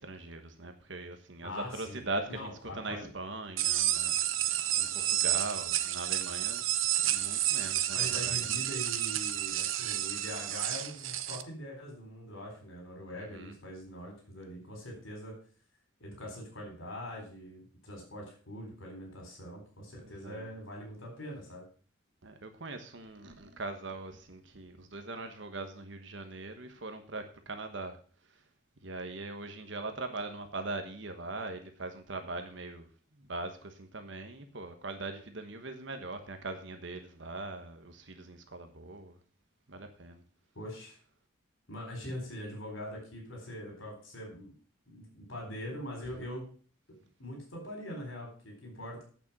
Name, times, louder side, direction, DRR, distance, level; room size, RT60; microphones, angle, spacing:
voice 1, 0.0-6.6 7.0-8.5 13.1-13.5 20.0-20.5 22.2-28.0 28.8-32.9 33.2-39.2 39.7-40.2, right 2 dB, 65° right, 6 dB, 1.2 m, -41 dB
voice 2, 1.4-2.0 2.3-3.1 7.9-15.4 16.0-21.6 40.5-41.0 41.7-44.5 44.9-46.4 47.2-49.0, left 1 dB, 80° left, 1 dB, 4.1 m, -43 dB
sound 1, 3.6-11.4, right 12 dB, 80° right, 0.7 m, -30 dB
8.6 x 7.1 x 6.0 m, 0.42 s
head